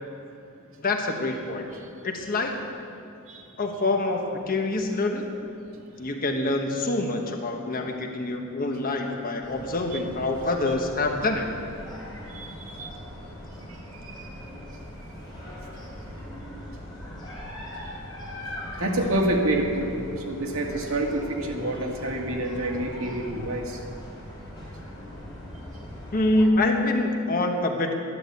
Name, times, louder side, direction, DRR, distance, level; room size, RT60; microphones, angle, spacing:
voice 1, 0.8-1.6 2.0-2.5 3.6-5.3 6.0-11.5 26.1-27.9, left 2 dB, 40° left, 3 dB, 1.2 m, -26 dB
sound 1, 9.4-26.4, left 1 dB, 20° left, 4.0 m, -40 dB
voice 2, 12.3-12.9 13.6-14.3 18.8-20.0 20.2-23.8, right 1 dB, 80° right, 0 dB, 2.0 m, -28 dB
11.5 x 11.0 x 8.0 m, 2.7 s
head